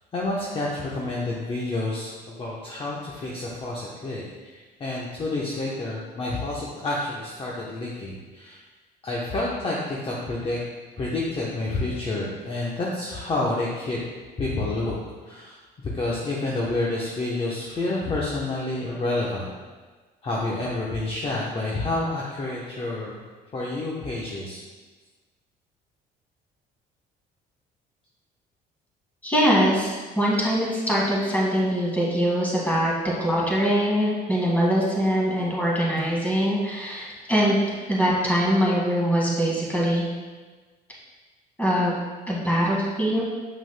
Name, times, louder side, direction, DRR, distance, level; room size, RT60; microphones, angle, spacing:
voice 1, 0.1-8.6 9.0-10.6 11.0-14.0 14.4-14.9 15.2-15.6 15.8-19.5 20.2-23.2 23.5-24.6, left 2 dB, 35° left, -5 dB, 0.9 m, -29 dB
voice 2, 29.2-32.9 33.2-40.0 41.6-41.9 42.3-43.2, equal, 10° left, -5 dB, 1.9 m, -23 dB
7.4 x 5.9 x 2.2 m, 1.3 s
cardioid pair, 110°, 17 cm